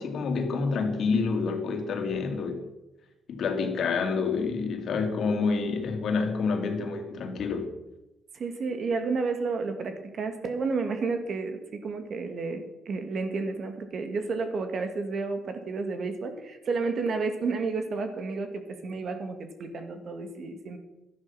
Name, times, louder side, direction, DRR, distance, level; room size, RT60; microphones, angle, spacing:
voice 1, 0.0-2.7 3.3-7.7, left 4 dB, 65° left, 5 dB, 2.4 m, -28 dB
voice 2, 8.3-20.8, right 4 dB, 55° right, 7 dB, 2.1 m, -31 dB
12.0 x 10.5 x 5.7 m, 0.96 s
cardioid pair, 90°, 0 cm